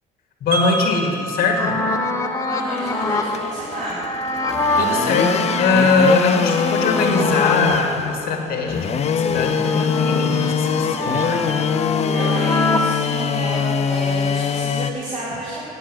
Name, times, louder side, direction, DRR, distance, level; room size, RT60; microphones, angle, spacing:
voice 1, 0.4-1.8 4.8-11.5, left 3 dB, 65° left, 1 dB, 1.8 m, -21 dB
Wind chime, 0.5-6.5, right 1 dB, 65° right, 2.4 m, -32 dB
sound 1, 1.6-7.7 8.1-12.9, left 2 dB, 20° left, 1.0 m, -25 dB
voice 2, 2.4-4.0 12.1-15.6, right 1 dB, 45° right, -8 dB, 2.9 m, -30 dB
sound 2, 2.8-14.9, left 7 dB, 40° left, 0.5 m, -23 dB
9.5 x 8.4 x 7.6 m, 2.5 s
cardioid pair, 110°, 17 cm